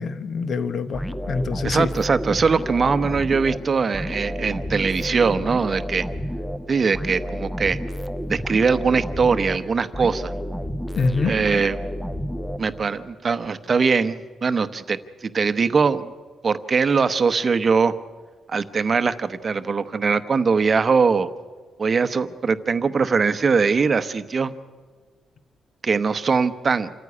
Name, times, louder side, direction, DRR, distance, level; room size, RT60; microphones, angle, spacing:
voice 1, 0.0-1.9 11.0-11.3, left 4 dB, 45° left, 11 dB, 1.1 m, -25 dB
sound 1, 0.9-13.1, equal, ahead, 0.8 m, -30 dB
voice 2, 1.6-6.0 6.7-7.8 8.3-10.3 11.2-11.8 12.6-16.1 16.4-17.9 18.5-21.3 21.8-24.5 25.8-26.9, right 5 dB, 30° right, 11 dB, 0.9 m, -21 dB
27.5 x 14.5 x 9.7 m, 1.5 s
wide cardioid pair, 170°, 0 cm